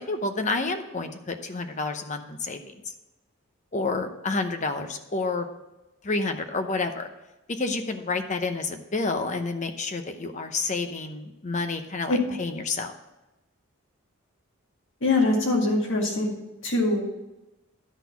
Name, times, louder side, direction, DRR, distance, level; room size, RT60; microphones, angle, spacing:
voice 1, 0.0-2.8 3.7-5.5 6.0-7.1 7.5-12.9, left 3 dB, 35° left, 7 dB, 0.7 m, -29 dB
voice 2, 15.0-16.3 16.6-17.0, left 2 dB, 55° left, -1 dB, 2.1 m, -23 dB
11.0 x 4.1 x 6.9 m, 1.0 s
head